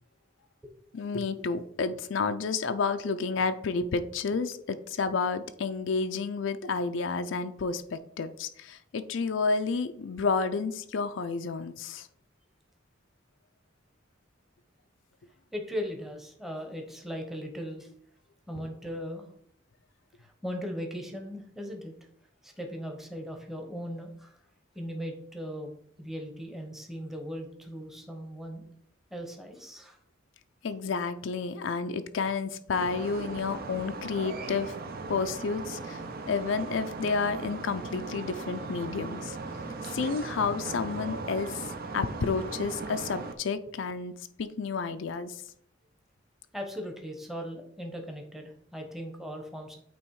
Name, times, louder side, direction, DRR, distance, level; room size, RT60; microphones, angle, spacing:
voice 1, 0.9-12.1 30.6-34.8 35.1-36.0 36.3-39.4 39.8-45.4, left 4 dB, 70° left, 10 dB, 0.5 m, -30 dB
voice 2, 15.5-17.9 18.5-19.3 20.2-21.9 22.4-24.4 24.7-25.7 26.0-28.7 29.1-30.0 46.5-49.8, equal, ahead, 2 dB, 0.9 m, -38 dB
sound 1, 32.7-43.3, right 3 dB, 50° right, 0.7 m, -38 dB
8.6 x 3.0 x 4.7 m, 0.69 s
head